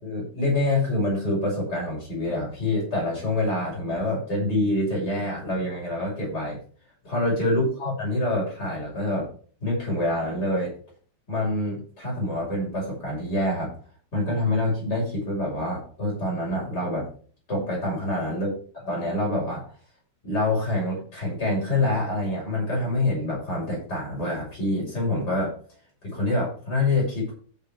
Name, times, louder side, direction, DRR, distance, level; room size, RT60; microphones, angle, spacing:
voice 1, 0.0-6.6 7.0-9.3 9.6-10.7 11.3-13.7 14.1-17.1 17.5-18.5 18.9-19.6 20.2-25.5 26.0-27.3, left 1 dB, 55° left, -4 dB, 6.9 m, -26 dB
14.0 x 5.5 x 4.6 m, 0.43 s
omnidirectional pair, 2.2 m